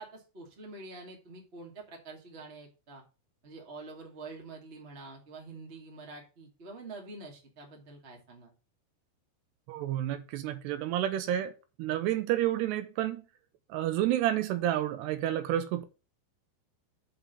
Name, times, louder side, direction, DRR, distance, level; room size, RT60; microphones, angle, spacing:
voice 1, 0.0-3.0 3.4-8.5, right 3 dB, 30° right, 1.2 m, -46 dB
voice 2, 9.7-11.5 11.8-13.2 13.7-15.8, right 12 dB, 80° right, 2.8 m, -30 dB
6.0 x 5.7 x 6.8 m
omnidirectional pair, 5.0 m